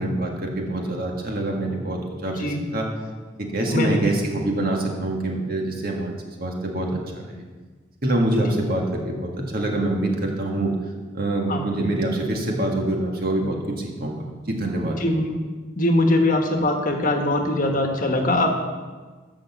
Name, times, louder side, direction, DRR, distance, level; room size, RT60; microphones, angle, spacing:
voice 1, 0.0-2.9 3.5-7.4 8.0-10.7 11.1-15.0, right 1 dB, 50° right, 1 dB, 1.8 m, -25 dB
voice 2, 3.7-4.1 11.5-11.7 15.0-15.4 15.8-18.5, left 1 dB, 45° left, 3 dB, 1.3 m, -21 dB
11.0 x 6.3 x 7.2 m, 1.4 s
head